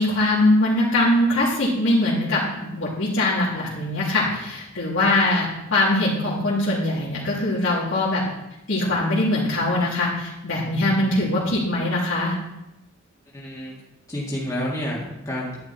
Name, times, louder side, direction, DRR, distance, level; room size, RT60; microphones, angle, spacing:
voice 1, 0.0-8.2 8.7-12.3, left 1 dB, 70° left, -7 dB, 3.0 m, -22 dB
voice 2, 13.3-13.7 14.1-15.6, equal, 20° left, -6 dB, 2.2 m, -29 dB
11.0 x 10.5 x 4.3 m, 0.90 s
head